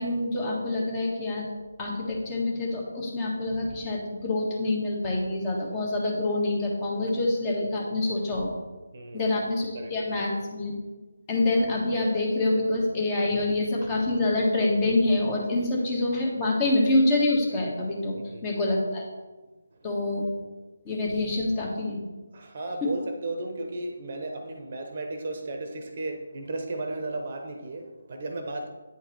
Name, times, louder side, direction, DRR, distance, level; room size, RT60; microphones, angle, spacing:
voice 1, 0.0-1.5 1.8-8.5 9.1-10.7 11.3-18.1 18.4-19.0 19.8-20.3 20.8-22.0, left 2 dB, 25° left, -2 dB, 1.6 m, -26 dB
voice 2, 8.9-9.3 9.7-9.9 18.2-18.6 22.3-28.7, right 2 dB, 45° right, 4 dB, 1.0 m, -35 dB
9.0 x 4.5 x 4.5 m, 1.2 s
figure-of-eight pair, 155°, 0 cm